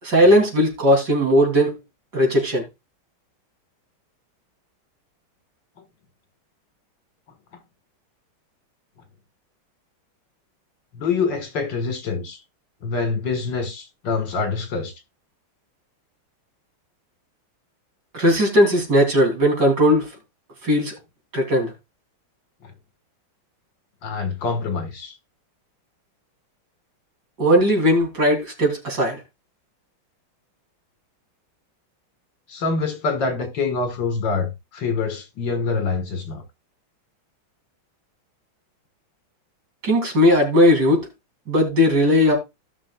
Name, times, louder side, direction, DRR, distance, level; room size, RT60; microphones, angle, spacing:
voice 1, 0.0-1.7 2.1-2.6 18.1-20.1 20.6-21.0 21.3-21.7 27.4-29.2 39.8-41.1 41.5-42.3, equal, 55° right, 3.6 m, -18 dB
voice 2, 10.9-12.4 12.8-14.9 24.0-25.1 32.5-36.4, left 4 dB, 65° left, 2.3 m, -25 dB
17.0 x 6.1 x 2.3 m
omnidirectional pair, 2.3 m